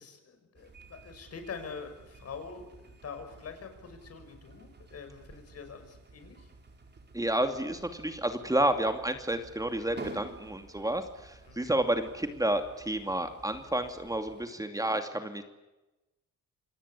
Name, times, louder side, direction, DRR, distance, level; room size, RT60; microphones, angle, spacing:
voice 1, 0.0-6.5 11.5-11.6, left 5 dB, 55° left, 7 dB, 6.2 m, -45 dB
sound 1, 0.6-14.5, right 3 dB, 35° right, 4.5 m, -51 dB
voice 2, 7.1-15.4, right 1 dB, 10° right, 6 dB, 2.6 m, -30 dB
27.5 x 19.0 x 8.5 m, 1.0 s
cardioid pair, 90°, 30 cm